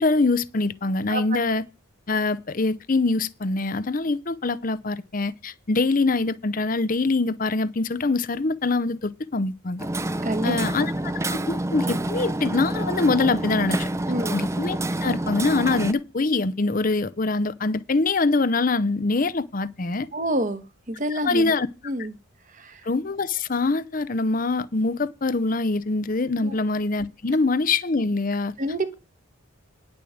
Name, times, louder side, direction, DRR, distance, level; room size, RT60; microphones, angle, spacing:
voice 1, 0.0-1.6 2.1-9.9 10.4-13.9 14.3-20.1 21.3-21.7 22.9-28.5, left 3 dB, 40° left, 0.7 m, -24 dB
voice 2, 1.1-1.4 10.2-10.6 14.1-14.4 20.1-21.5 21.8-22.1 22.5-22.9 26.4-26.6 28.6-28.9, right 1 dB, 40° right, 1.3 m, -28 dB
Hammer, 9.8-15.9, right 1 dB, 15° right, 0.5 m, -27 dB
10.5 x 6.9 x 6.4 m
head